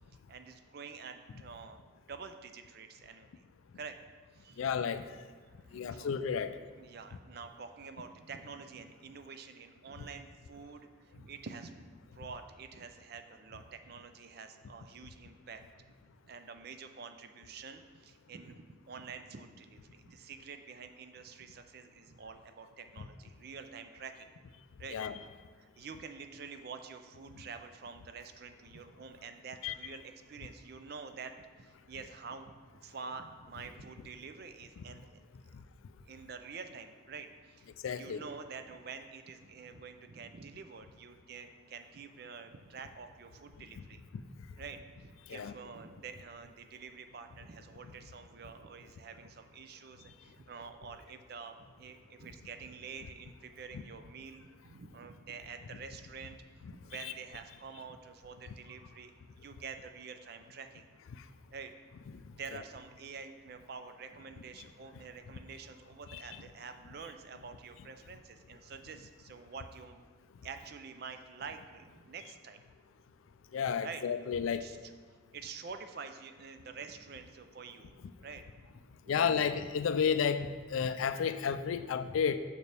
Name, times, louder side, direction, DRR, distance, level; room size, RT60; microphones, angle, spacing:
voice 1, 0.3-1.8 2.1-3.3 3.8-4.0 4.3-4.7 5.5-6.1 6.8-11.9 12.1-15.6 16.2-24.3 24.8-25.0 25.6-35.1 36.0-44.0 44.6-60.9 61.5-61.7 62.3-70.0 70.4-72.6 73.8-74.0 74.6-74.9 75.3-77.9 78.2-78.4 78.8-79.2, right 5 dB, 50° right, 8 dB, 0.4 m, -48 dB
voice 2, 4.6-5.1 5.7-6.6 24.9-25.2 29.6-29.7 34.8-34.9 37.8-38.2 45.3-45.5 57.0-57.1 66.1-66.4 73.5-74.6 79.1-82.4, left 7 dB, 85° left, 12 dB, 0.4 m, -32 dB
6.7 x 5.9 x 3.4 m, 1.5 s
head